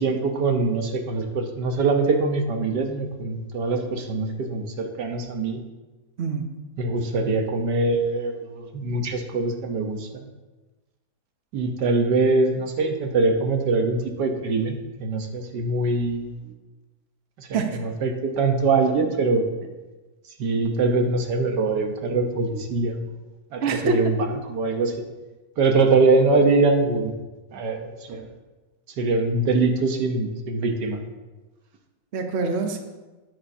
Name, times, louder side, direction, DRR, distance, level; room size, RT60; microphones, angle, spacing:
voice 1, 0.0-5.6 6.8-10.2 11.5-16.3 17.4-19.4 20.4-23.0 23.5-24.9 25.6-27.1 27.5-28.3 29.0-31.0, right 3 dB, 85° right, 4 dB, 1.6 m, -23 dB
voice 2, 6.2-6.5 17.5-17.8 23.6-24.3 32.1-32.8, right 4 dB, 45° right, 5 dB, 1.1 m, -25 dB
12.5 x 10.0 x 2.8 m, 1.2 s
omnidirectional pair, 1.8 m